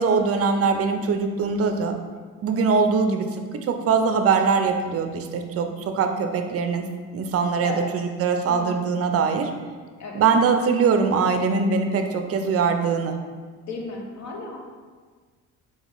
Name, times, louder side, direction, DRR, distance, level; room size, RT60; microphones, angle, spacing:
voice 1, 0.0-1.9 2.4-6.9 7.1-9.5 10.1-13.2, right 5 dB, 45° right, 6 dB, 0.5 m, -22 dB
voice 2, 8.5-8.9 10.0-10.2 13.7-14.6, left 2 dB, 50° left, 1 dB, 0.9 m, -34 dB
4.0 x 3.8 x 3.0 m, 1.5 s
cardioid pair, 100°, 34 cm